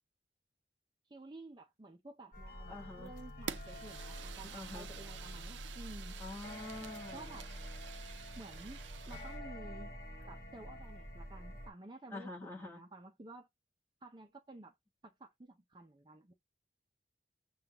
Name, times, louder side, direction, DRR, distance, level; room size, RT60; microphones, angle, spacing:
voice 1, 1.1-6.2 7.1-7.5 8.4-9.9 10.3-13.5 14.0-14.7 15.2-16.3, right 2 dB, 25° right, 0.5 m, -52 dB
sound 1, 2.3-11.7, equal, 45° left, 1.4 m, -47 dB
voice 2, 2.7-3.1 4.5-4.9 6.2-7.4 12.1-12.8, left 2 dB, 10° left, 1.2 m, -46 dB
Fire, 3.5-9.4, right 8 dB, 85° right, 0.4 m, -49 dB
6.6 x 2.3 x 2.9 m
head